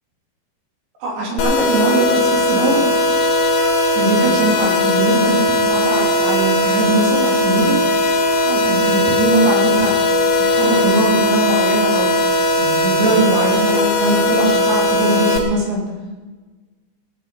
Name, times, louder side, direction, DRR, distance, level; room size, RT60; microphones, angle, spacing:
voice 1, 1.0-2.9 3.9-7.8 8.5-9.9 10.5-12.1 12.6-15.8, right 2 dB, 60° right, -2 dB, 4.8 m, -20 dB
sound 1, 1.4-15.4, left 1 dB, 75° left, 4.0 m, -17 dB
17.0 x 9.9 x 5.2 m, 1.3 s
omnidirectional pair, 5.3 m